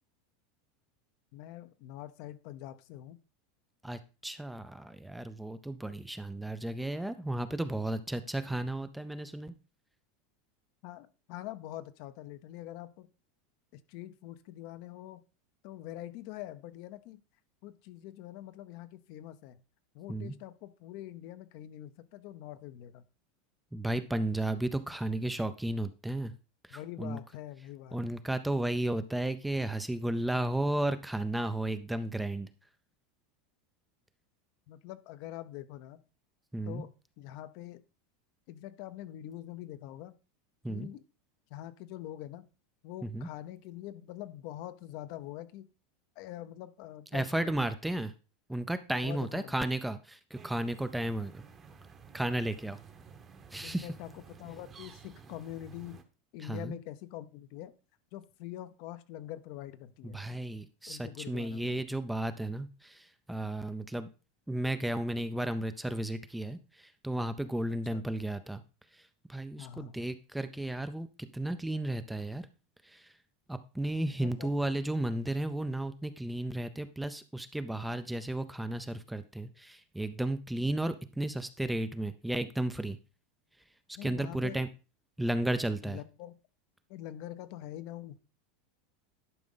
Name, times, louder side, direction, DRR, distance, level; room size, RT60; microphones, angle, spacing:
voice 1, 1.3-3.2 10.8-13.1 13.7-15.2 15.6-17.2 17.6-19.6 19.9-23.0 26.7-28.3 34.7-36.0 36.6-36.9 37.2-37.8 38.5-40.1 40.7-41.0 41.5-42.4 42.8-45.7 46.2-47.7 49.0-49.6 53.6-56.0 56.3-57.7 58.1-60.2 60.9-61.8 67.9-68.0 69.6-70.0 74.2-74.5 84.0-84.6 85.8-86.4 86.9-88.2, left 13 dB, 55° left, 13 dB, 0.7 m, -44 dB
voice 2, 3.8-9.5 20.1-20.3 23.7-26.3 26.6-27.2 27.9-32.5 36.5-36.8 40.6-40.9 43.0-43.3 47.1-48.1 48.5-51.4 52.1-52.8 53.5-53.9 56.4-56.8 60.0-64.1 64.5-68.6 68.9-72.5 72.8-73.1 73.5-83.0 84.0-84.7 85.2-86.0, right 1 dB, 5° right, 11 dB, 0.4 m, -34 dB
sound 1, 50.3-56.0, right 6 dB, 20° right, 0.9 m, -53 dB
11.0 x 5.0 x 3.8 m, 0.32 s
supercardioid pair, 150°, 0 cm